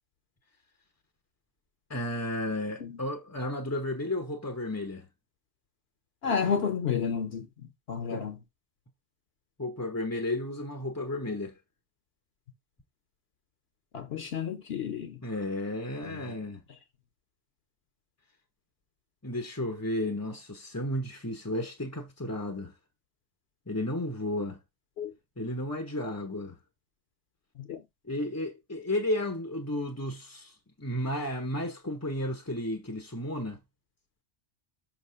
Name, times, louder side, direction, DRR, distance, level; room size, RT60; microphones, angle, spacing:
voice 1, 1.9-5.1 8.1-8.2 9.6-11.5 15.2-16.6 19.2-22.7 23.7-24.6 25.4-26.6 28.0-33.6, left 1 dB, 20° left, 0.5 m, -33 dB
voice 2, 6.2-7.5 7.9-8.4 13.9-15.2 16.0-16.4 25.0-25.1 27.6-27.8, left 7 dB, 60° left, 0.9 m, -31 dB
5.7 x 2.9 x 5.5 m
omnidirectional pair, 1.2 m